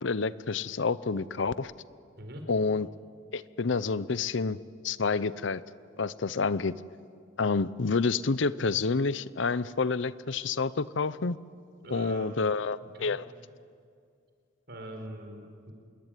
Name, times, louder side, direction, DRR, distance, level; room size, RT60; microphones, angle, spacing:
voice 1, 0.0-1.7 2.5-2.9 3.3-4.6 4.8-5.6 6.0-6.7 7.4-11.4 11.9-13.3, left 4 dB, 70° left, 17 dB, 0.7 m, -28 dB
voice 2, 11.8-12.3 12.8-13.1 14.7-15.7, right 1 dB, 55° right, 4 dB, 4.8 m, -42 dB
27.0 x 22.0 x 9.2 m, 2.3 s
head